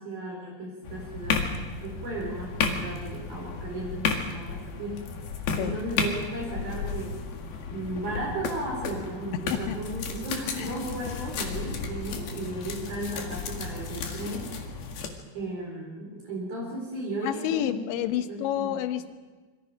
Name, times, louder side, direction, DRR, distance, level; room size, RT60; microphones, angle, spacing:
voice 1, 0.0-1.4 1.8-5.0 5.6-7.1 7.7-14.5 15.3-17.9 18.3-18.8, right 1 dB, 55° right, -2 dB, 6.2 m, -35 dB
sound 1, 0.8-15.1, left 5 dB, 60° left, 3.6 m, -33 dB
voice 2, 5.5-5.8 9.3-9.8 10.6-10.8 17.2-19.1, left 11 dB, 80° left, 9 dB, 3.4 m, -29 dB
27.5 x 24.0 x 5.2 m, 1.3 s
omnidirectional pair, 5.2 m